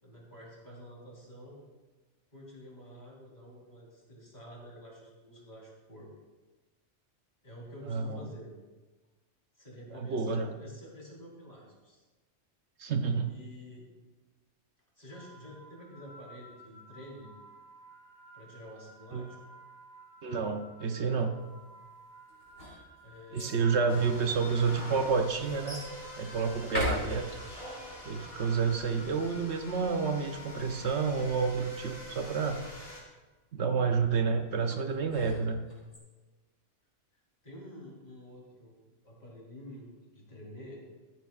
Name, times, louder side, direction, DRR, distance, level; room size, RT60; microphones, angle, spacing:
voice 1, 0.0-1.6 2.3-6.1 7.4-8.5 9.6-12.0 13.3-13.9 14.9-17.3 18.3-19.4 23.0-23.6 23.9-24.5 25.3-25.5 28.8-29.1 37.4-40.8, equal, 35° left, -4 dB, 3.6 m, -49 dB
voice 2, 7.9-8.3 9.9-10.5 12.8-13.4 19.1-19.2 20.2-21.3 23.3-25.8 26.2-27.4 28.1-32.6 33.5-35.6, right 5 dB, 70° right, 6 dB, 1.0 m, -29 dB
sound 1, 15.1-30.2, right 1 dB, 20° right, 3.6 m, -54 dB
sound 2, 22.3-23.6 24.4-24.5 25.7-25.9 26.6-27.6 34.7-36.0, left 1 dB, 75° left, 3.6 m, -38 dB
sound 3, 23.9-33.0, equal, 55° left, 3.1 m, -45 dB
15.0 x 13.5 x 2.4 m, 1.3 s
omnidirectional pair, 1.2 m